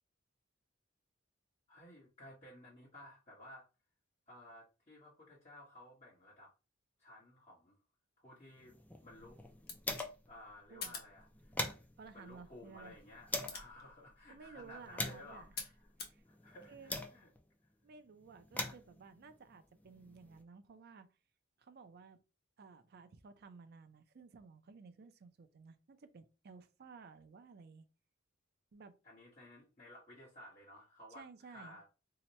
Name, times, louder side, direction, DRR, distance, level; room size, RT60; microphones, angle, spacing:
voice 1, 1.7-3.6 4.3-6.5 7.0-7.8 8.2-9.4 10.3-11.6 12.1-15.9 16.2-17.3 29.0-31.9, left 1 dB, 35° left, 1.2 m, -56 dB
sound 1, 8.6-10.4 10.7-10.8 11.1-13.7 14.3-17.5 18.2-20.4, left 2 dB, 10° left, 0.4 m, -44 dB
sound 2, 9.1-16.2, left 5 dB, 50° left, 0.8 m, -51 dB
voice 2, 12.0-13.0 14.3-15.5 16.0-16.2 16.7-17.0 17.8-21.1 21.6-22.2 22.6-27.8 28.7-29.0 31.1-31.8, right 5 dB, 55° right, 0.4 m, -55 dB
2.8 x 2.2 x 4.1 m
head